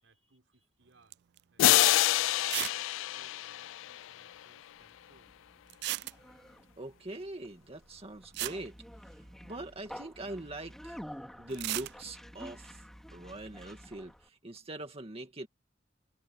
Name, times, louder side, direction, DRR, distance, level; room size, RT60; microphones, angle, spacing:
voice 1, 0.0-1.2 1.5-5.3 8.1-8.3 9.2-9.5, right 2 dB, 75° right, 5.1 m, -68 dB
sound 1, 1.1-1.4 1.8-1.9 2.5-2.8 3.1-3.2 3.4-3.5 5.7-6.5 7.9-8.0 8.3-9.6 11.5-12.0, right 16 dB, 60° right, 0.3 m, -36 dB
sound 2, 1.6-4.5, left 15 dB, 85° left, 0.3 m, -27 dB
Conversation, 4.8-14.3, equal, ahead, 2.5 m, -50 dB
voice 2, 6.8-11.0 11.4-15.5, right 1 dB, 30° right, 2.0 m, -43 dB
head